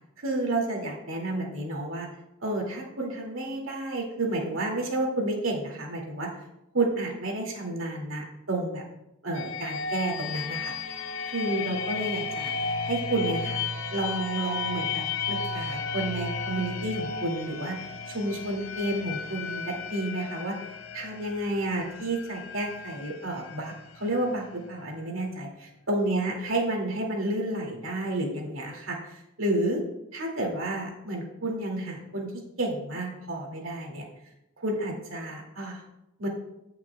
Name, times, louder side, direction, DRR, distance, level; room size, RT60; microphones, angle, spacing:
voice 1, 0.2-2.1 2.4-6.3 6.7-8.8 9.2-10.7 11.2-12.5 12.8-13.6 13.9-20.5 20.9-29.8 30.1-34.1 34.6-35.8 36.2-36.3, right 1 dB, 75° right, -1 dB, 2.4 m, -31 dB
sound 1, 9.3-25.0, left 4 dB, 85° left, 0.7 m, -34 dB
17.0 x 5.9 x 2.3 m, 0.87 s
head